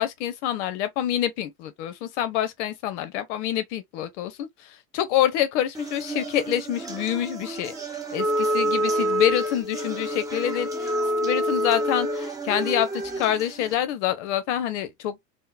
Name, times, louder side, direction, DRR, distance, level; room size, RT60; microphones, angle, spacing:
voice 1, 0.0-7.7 8.1-10.9 11.2-15.2, left 11 dB, 45° left, 0.6 m, -27 dB
sound 1, 5.7-13.7, right 3 dB, 10° right, 0.4 m, -35 dB
Wind instrument woodwind instrument, 8.2-12.3, equal, 25° right, 1.0 m, -26 dB
3.6 x 2.1 x 2.3 m
figure-of-eight pair, 85°, 50 cm